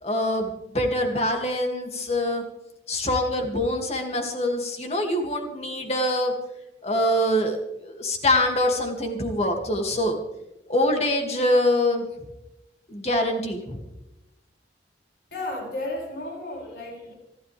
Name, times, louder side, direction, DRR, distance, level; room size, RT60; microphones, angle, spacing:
voice 1, 0.0-2.4 2.9-6.3 6.8-10.2 10.7-12.1 12.9-13.8, left 1 dB, 35° left, 3 dB, 2.5 m, -24 dB
voice 2, 15.3-17.1, left 2 dB, 65° left, -1 dB, 6.2 m, -33 dB
27.5 x 12.0 x 3.5 m, 0.92 s
head